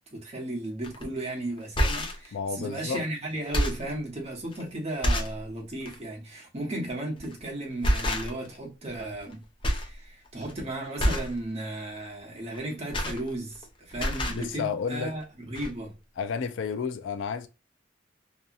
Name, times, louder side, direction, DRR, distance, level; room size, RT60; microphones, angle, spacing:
voice 1, 0.1-9.4 9.7-15.9, right 1 dB, 35° right, 1.1 m, -35 dB
sound 1, 0.8-1.0 1.6-2.3 2.9-3.0 3.4-3.9 4.5-4.6 5.0-5.4 5.8-6.0 7.2-7.4 7.8-8.6 8.9-9.3 9.6-9.9 10.3-10.5 11.0-11.4 12.5-13.6 13.9-14.4 15.2-15.3 15.5-15.7, equal, 25° left, 0.6 m, -28 dB
voice 2, 2.3-3.1 14.3-15.1 16.2-17.5, left 6 dB, 80° left, 0.3 m, -31 dB
2.7 x 2.3 x 2.4 m
head